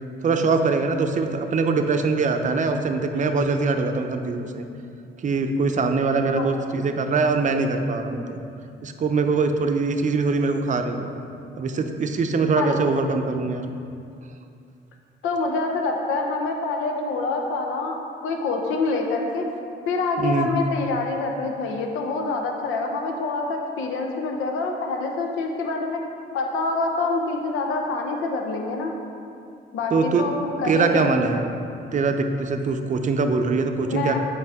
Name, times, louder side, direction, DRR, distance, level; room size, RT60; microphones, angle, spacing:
voice 1, 0.2-4.7 5.2-8.4 8.8-11.1 11.6-13.6 20.2-20.5 29.9-30.3 30.6-31.6 31.9-34.2, right 4 dB, 40° right, 6 dB, 0.6 m, -23 dB
voice 2, 15.2-18.0 18.2-19.5 19.9-26.0 26.3-28.9 29.7-31.2 33.9-34.2, left 3 dB, 85° left, 2 dB, 0.8 m, -26 dB
7.9 x 4.8 x 3.6 m, 2.5 s
cardioid pair, 90°, 20 cm